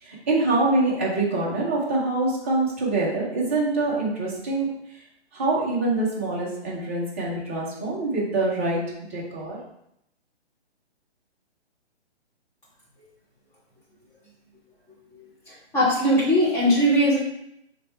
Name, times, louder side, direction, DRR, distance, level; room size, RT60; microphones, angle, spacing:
voice 1, 0.0-5.0 5.3-8.8 9.1-9.6, right 2 dB, 15° right, -5 dB, 0.4 m, -25 dB
voice 2, 15.7-17.2, equal, 10° left, -7 dB, 0.8 m, -19 dB
3.3 x 3.1 x 4.3 m, 0.79 s
hypercardioid pair, 155°, 34 cm